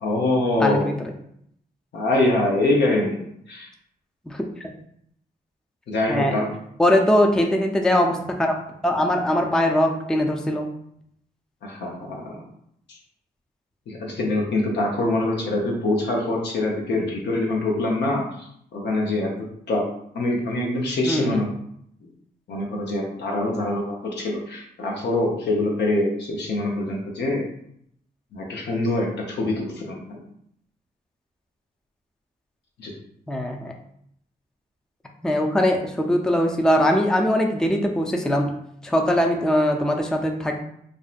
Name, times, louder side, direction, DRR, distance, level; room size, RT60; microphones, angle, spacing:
voice 1, 0.0-0.9 1.9-3.2 3.5-3.7 5.9-6.5 11.6-12.4 12.9-13.0 13.9-18.2 18.7-19.3 19.7-19.8 20.1-21.5 22.0-22.1 22.5-27.4 28.3-30.2 32.8-32.9, left 2 dB, 70° left, -1 dB, 0.7 m, -24 dB
voice 2, 0.6-0.9 4.3-4.4 6.1-6.4 6.8-8.6 8.8-10.7 21.0-21.5 33.3-33.7 35.2-38.5 38.8-40.6, left 1 dB, 5° left, 2 dB, 0.4 m, -21 dB
2.6 x 2.1 x 2.4 m, 0.70 s
supercardioid pair, 50°, 18 cm